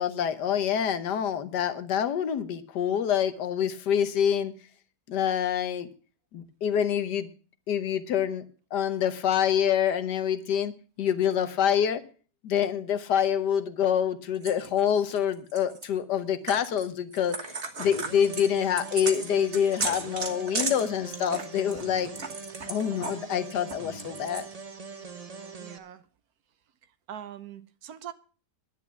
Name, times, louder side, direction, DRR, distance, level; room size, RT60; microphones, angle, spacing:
voice 1, 0.0-4.5 5.1-5.9 6.3-7.3 7.7-8.4 8.7-10.7 11.0-12.0 12.4-22.1 22.7-24.5, left 8 dB, 85° left, 1.6 m, -26 dB
sound 1, 14.4-15.9 16.5-16.9 17.1-23.2 23.5-24.5, right 3 dB, 45° right, 1.7 m, -35 dB
sound 2, 17.8-25.8, right 4 dB, 30° right, 0.9 m, -42 dB
voice 2, 25.6-26.1 27.1-28.1, right 10 dB, 65° right, 1.2 m, -42 dB
10.5 x 8.5 x 7.1 m
omnidirectional pair, 1.8 m